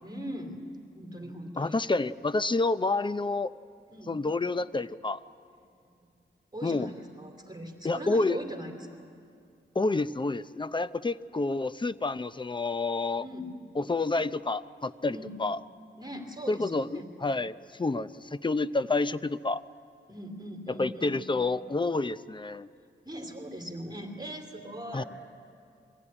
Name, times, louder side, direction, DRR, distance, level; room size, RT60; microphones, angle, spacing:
voice 1, 0.0-0.7 0.9-1.8 3.9-4.2 6.0-6.1 6.5-8.7 13.2-13.5 15.1-15.4 16.0-17.1 20.1-21.2 23.0-25.1, equal, 20° right, 3 dB, 3.0 m, -40 dB
voice 2, 1.6-3.5 4.1-5.2 6.6-6.9 7.8-8.4 9.7-13.2 13.8-15.6 16.5-19.6 20.7-22.7 24.9-25.0, left 3 dB, 25° left, 13 dB, 0.6 m, -29 dB
22.5 x 16.0 x 9.7 m, 2.3 s
cardioid pair, 70°, 20 cm